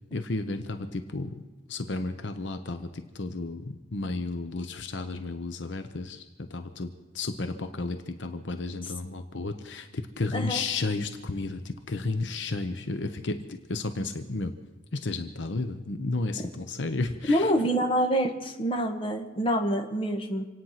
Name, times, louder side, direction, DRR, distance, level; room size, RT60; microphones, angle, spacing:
voice 1, 0.1-1.3 1.7-6.2 6.5-6.9 7.1-14.5 14.9-17.4, left 3 dB, 70° left, 8 dB, 0.9 m, -32 dB
voice 2, 10.3-10.6 17.3-20.4, equal, 30° left, 3 dB, 1.5 m, -26 dB
26.5 x 9.3 x 5.8 m, 1.2 s
head